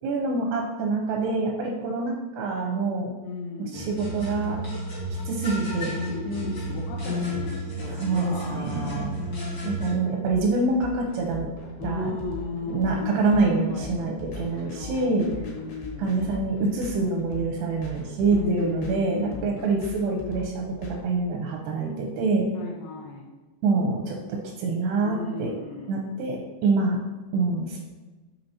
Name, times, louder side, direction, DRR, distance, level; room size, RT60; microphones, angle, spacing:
voice 1, 0.0-3.1 3.6-4.6 5.3-6.0 7.9-9.1 9.6-11.5 11.8-12.1 12.7-15.3 16.0-22.5 23.6-25.5 25.9-27.0 27.3-27.8, right 3 dB, 85° right, 1 dB, 2.5 m, -26 dB
voice 2, 3.2-3.9 5.9-7.5 7.8-9.1 11.8-13.2 13.5-14.1 14.4-16.2 18.3-19.6 22.5-23.3 25.0-26.2, left 3 dB, 90° left, -1 dB, 2.1 m, -35 dB
sound 1, 3.7-9.9, equal, 40° left, 1.6 m, -32 dB
sound 2, 10.3-21.0, left 3 dB, 70° left, 2.9 m, -41 dB
6.6 x 5.7 x 2.8 m, 1.2 s
omnidirectional pair, 5.1 m